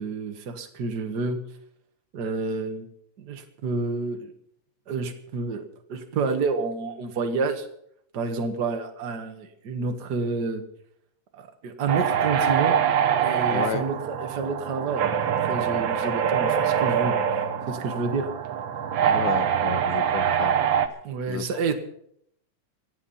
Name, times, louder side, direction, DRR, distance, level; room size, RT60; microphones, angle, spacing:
voice 1, 0.0-1.4 2.1-2.9 3.2-4.3 4.9-7.7 8.1-10.6 11.3-12.8 13.2-17.2 17.7-18.3 21.0-21.7, right 4 dB, 40° right, 5 dB, 1.8 m, -29 dB
sound 1, 11.9-20.9, right 8 dB, 65° right, 1.2 m, -24 dB
voice 2, 13.5-13.9 19.1-20.6 21.3-21.5, left 10 dB, 90° left, 12 dB, 2.4 m, -32 dB
25.0 x 8.5 x 5.6 m, 0.70 s
omnidirectional pair, 3.4 m